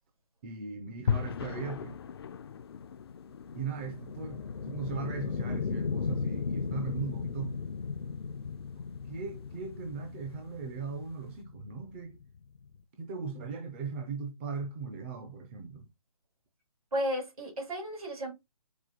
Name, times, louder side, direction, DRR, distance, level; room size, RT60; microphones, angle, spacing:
voice 1, 0.4-2.0 3.5-7.6 9.1-12.2 13.0-15.9, right 5 dB, 20° right, 0.5 m, -39 dB
sound 1, 1.1-11.3, left 7 dB, 40° left, 0.4 m, -41 dB
sound 2, 2.3-12.8, left 5 dB, 80° left, 0.8 m, -37 dB
voice 2, 16.9-18.3, equal, 75° right, 3.0 m, -33 dB
4.8 x 2.3 x 3.8 m
hypercardioid pair, 155°, 19 cm